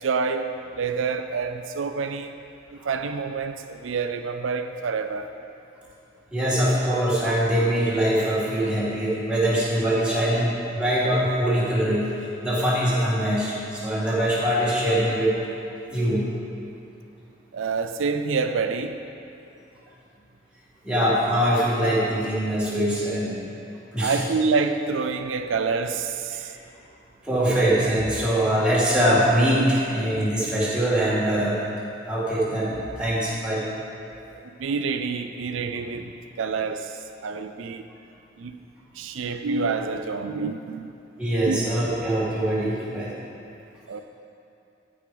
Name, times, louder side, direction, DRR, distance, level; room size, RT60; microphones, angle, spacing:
voice 1, 0.0-2.3 2.8-5.3 17.5-19.0 24.0-26.5 34.6-36.9 37.2-37.9 38.4-38.5 39.0-40.9 41.5-41.7 43.9-44.0, right 4 dB, 90° right, 8 dB, 0.4 m, -27 dB
voice 2, 6.3-12.1 12.4-15.3 15.9-16.2 20.8-23.4 23.9-24.2 26.3-26.5 27.2-31.6 32.1-33.6 41.2-43.1, right 1 dB, 5° right, -8 dB, 2.0 m, -23 dB
14.5 x 4.9 x 5.0 m, 2.7 s
head